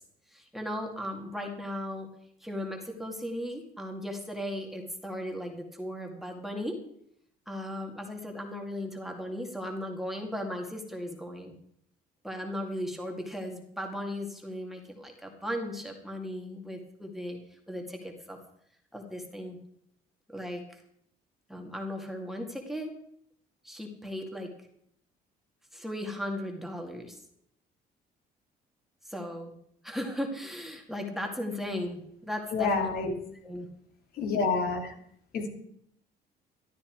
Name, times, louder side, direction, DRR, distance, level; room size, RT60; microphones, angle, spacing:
voice 1, 0.3-2.1 2.4-6.8 7.5-11.5 12.2-17.4 17.7-18.4 18.9-19.6 20.3-20.6 21.5-22.9 23.6-24.5 25.7-27.2 29.1-29.5 29.8-33.2 33.4-33.7, left 1 dB, ahead, 1 dB, 2.2 m, -36 dB
voice 2, 32.5-33.1 34.1-34.9 35.3-35.5, left 4 dB, 65° left, 2 dB, 3.1 m, -28 dB
12.5 x 12.5 x 4.6 m, 0.69 s
cardioid pair, 110°, 17 cm